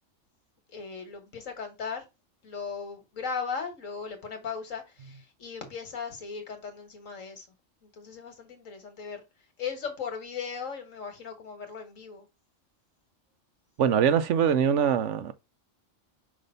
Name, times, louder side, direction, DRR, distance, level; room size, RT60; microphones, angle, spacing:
voice 1, 0.7-2.1 2.4-7.5 7.8-9.2 9.6-12.3, left 6 dB, 80° left, 1.8 m, -37 dB
voice 2, 13.8-15.3, right 8 dB, 70° right, 0.9 m, -23 dB
5.2 x 3.4 x 5.4 m
omnidirectional pair, 1.3 m